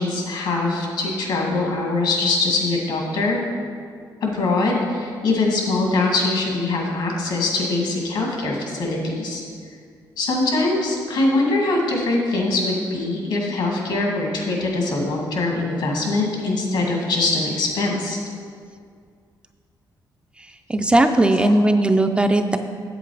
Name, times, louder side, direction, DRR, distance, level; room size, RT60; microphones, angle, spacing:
voice 1, 0.0-3.4 4.2-9.4 10.2-18.2 21.4-21.6, left 2 dB, 75° left, -1 dB, 2.0 m, -22 dB
voice 2, 20.7-22.6, right 1 dB, 15° right, 6 dB, 0.3 m, -17 dB
8.2 x 7.9 x 4.7 m, 2.1 s
wide cardioid pair, 165°, 8 cm